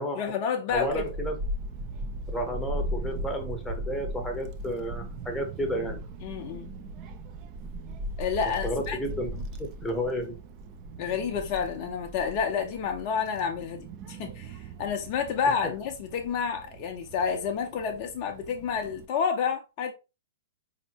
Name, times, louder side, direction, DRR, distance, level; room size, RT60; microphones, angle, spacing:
voice 1, 0.0-1.1 6.2-6.7 8.2-9.0 11.0-19.9, left 6 dB, 45° left, 0.6 m, -30 dB
voice 2, 0.7-1.4 2.3-6.0 8.6-10.4, equal, 5° left, 0.8 m, -32 dB
Child speech kid speaking / Wind, 0.7-19.1, right 1 dB, 35° right, 0.5 m, -38 dB
4.1 x 2.8 x 2.8 m
figure-of-eight pair, 110°, 0 cm